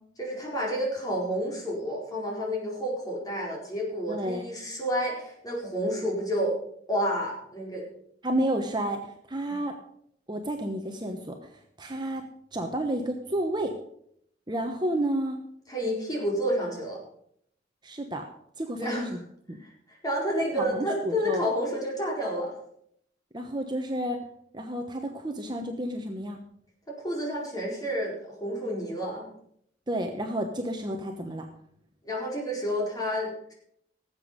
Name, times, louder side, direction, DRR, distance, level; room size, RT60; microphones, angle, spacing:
voice 1, 0.2-6.5 6.9-7.9 9.5-9.6 15.7-17.0 18.8-19.2 19.6-22.5 26.9-29.3 32.0-33.5, equal, 20° left, -2 dB, 4.4 m, -30 dB
voice 2, 4.1-4.5 8.2-9.7 10.3-12.2 12.5-13.7 14.5-15.4 17.8-18.3 18.6-19.2 19.5-19.6 20.3-21.5 23.3-24.2 24.5-26.4 29.9-31.5, right 1 dB, 25° right, 3 dB, 1.0 m, -31 dB
18.0 x 8.1 x 5.2 m, 0.70 s
head